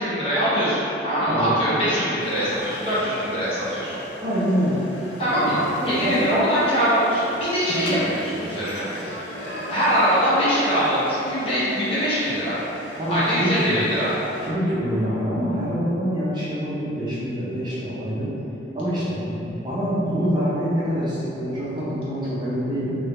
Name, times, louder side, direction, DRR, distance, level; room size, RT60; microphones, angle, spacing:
voice 1, 0.0-4.0 5.2-12.6 13.1-14.1, equal, 30° left, -11 dB, 1.0 m, -23 dB
sound 1, 2.2-14.5, left 1 dB, 65° left, 0.5 m, -38 dB
voice 2, 4.2-4.8 5.3-6.3 7.7-8.0 13.0-13.8 14.4-18.3 18.7-23.0, equal, 25° right, -10 dB, 0.7 m, -25 dB
3.5 x 2.8 x 3.1 m, 2.9 s
head